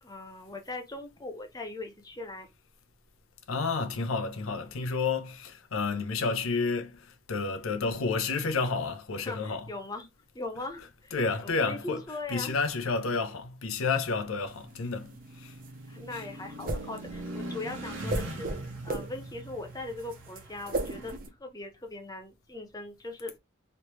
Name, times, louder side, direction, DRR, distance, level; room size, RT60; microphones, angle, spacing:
voice 1, 0.0-2.5 9.2-10.1 10.3-12.6 15.9-21.1 21.4-23.3, left 2 dB, 20° left, 0.6 m, -40 dB
voice 2, 3.5-9.7 11.1-12.0 12.3-15.5 16.1-16.2, left 4 dB, 85° left, 0.6 m, -30 dB
sounds of triumph bonneville speedmaster motorcycle, 13.7-21.2, right 1 dB, 70° right, 1.1 m, -42 dB
sound 1, 14.5-21.3, right 2 dB, 45° right, 0.6 m, -36 dB
3.1 x 3.0 x 3.0 m
head